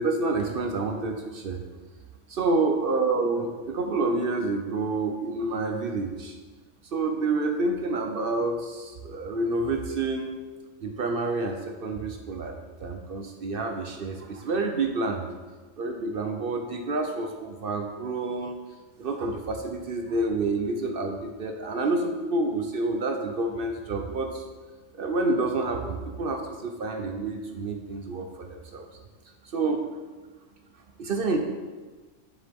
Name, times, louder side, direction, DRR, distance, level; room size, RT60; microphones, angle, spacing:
voice 1, 0.0-1.6 2.3-6.4 6.9-10.3 10.8-12.5 12.8-15.3 15.8-18.6 19.0-24.4 24.9-28.9 29.5-29.9 31.0-31.4, right 3 dB, 55° right, 4 dB, 0.7 m, -28 dB
7.4 x 6.7 x 3.5 m, 1.3 s
omnidirectional pair, 1.4 m